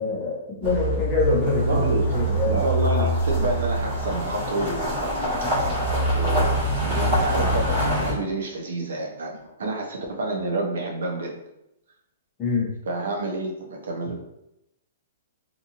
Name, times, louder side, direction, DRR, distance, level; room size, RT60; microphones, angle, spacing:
voice 1, 0.0-2.6 12.4-12.7, left 3 dB, 15° left, -4 dB, 0.6 m, -25 dB
sound 1, 0.6-8.1, right 1 dB, 35° right, 1.4 m, -24 dB
voice 2, 1.7-2.0 2.4-5.2 6.1-11.3 12.9-14.2, right 2 dB, 70° right, 0 dB, 0.6 m, -29 dB
2.6 x 2.5 x 2.8 m, 0.86 s
hypercardioid pair, 180°, 0 cm